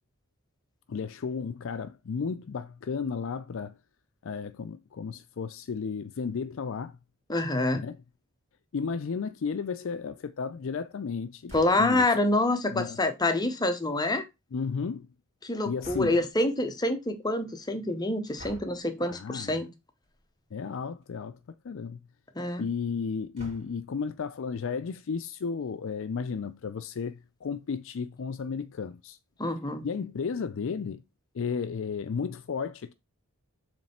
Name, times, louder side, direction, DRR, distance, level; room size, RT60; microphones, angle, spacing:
voice 1, 0.9-3.8 4.2-7.0 7.7-8.0 8.7-12.1 12.7-13.0 14.5-15.1 15.6-16.2 19.1-19.6 20.5-21.4 21.6-22.0 22.6-29.2 29.8-31.0 31.3-32.9, left 5 dB, 60° left, 0.4 m, -33 dB
voice 2, 7.3-7.8 11.5-14.2 15.4-19.7 22.4-22.7 29.4-29.9, left 2 dB, 20° left, 0.7 m, -27 dB
sound 1, 11.5-12.0 15.8-16.4 18.4-18.8 20.0-20.3 20.7-20.8 21.0-21.1 23.4-24.0, left 1 dB, 30° right, 2.8 m, -47 dB
7.3 x 3.2 x 4.2 m
head